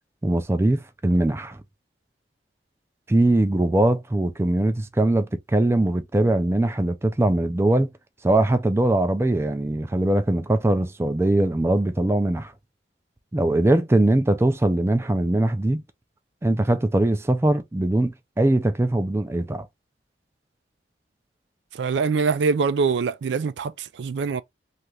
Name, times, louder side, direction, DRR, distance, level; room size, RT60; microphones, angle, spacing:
voice 1, 0.2-1.6 3.1-7.9 8.2-12.5 13.3-15.8 16.4-19.7, right 1 dB, 15° right, 0.4 m, -21 dB
voice 2, 21.7-24.4, right 5 dB, 85° right, 0.4 m, -24 dB
2.8 x 2.5 x 3.3 m
head